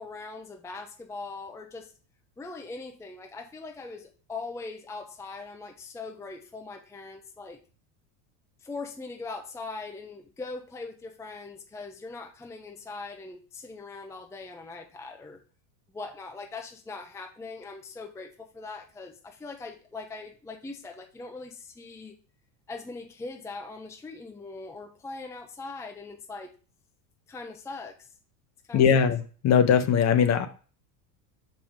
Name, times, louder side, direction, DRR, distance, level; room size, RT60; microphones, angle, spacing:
voice 1, 0.0-1.9 2.4-7.6 8.6-15.4 15.9-22.2 22.7-26.5 27.3-28.1 28.7-29.1, left 3 dB, 5° left, 3 dB, 0.6 m, -41 dB
voice 2, 28.7-30.5, left 7 dB, 35° left, 9 dB, 0.8 m, -21 dB
6.0 x 5.3 x 3.6 m, 0.38 s
supercardioid pair, 130°, 47 cm